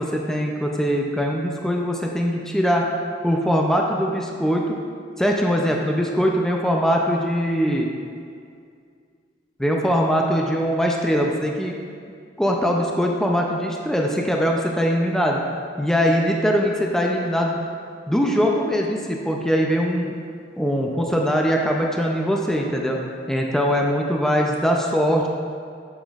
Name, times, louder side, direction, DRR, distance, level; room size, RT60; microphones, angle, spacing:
voice 1, 0.0-2.9 3.2-4.8 5.2-7.9 9.6-11.7 12.4-15.4 15.8-17.6 18.1-20.2 20.6-23.0 23.3-25.3, equal, 5° left, 0 dB, 0.4 m, -21 dB
7.3 x 7.1 x 2.4 m, 2.2 s
head